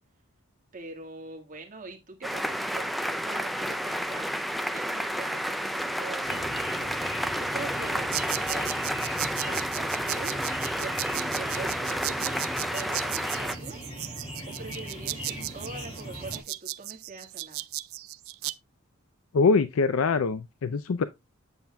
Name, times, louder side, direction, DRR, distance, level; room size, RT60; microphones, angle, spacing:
voice 1, 0.7-4.3 4.7-8.8 9.5-10.4 10.7-12.4 12.7-13.8 14.5-17.7, right 3 dB, 40° right, 1.7 m, -43 dB
sound 1, 2.2-13.6, equal, ahead, 0.4 m, -31 dB
sound 2, 6.2-16.4, equal, 30° left, 4.8 m, -39 dB
sound 3, 8.1-18.5, right 17 dB, 65° right, 0.4 m, -36 dB
voice 2, 19.3-21.0, left 4 dB, 70° left, 0.4 m, -23 dB
8.0 x 7.2 x 2.2 m
head